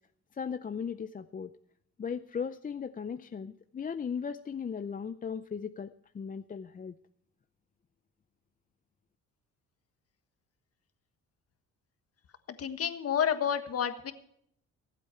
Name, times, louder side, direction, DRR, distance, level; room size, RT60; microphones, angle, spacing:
voice 1, 0.3-1.5 2.0-7.0, left 6 dB, 30° left, 11 dB, 0.5 m, -37 dB
voice 2, 12.6-14.1, left 8 dB, 50° left, 9 dB, 1.5 m, -29 dB
24.0 x 8.3 x 4.5 m, 0.68 s
cardioid pair, 90°, 30 cm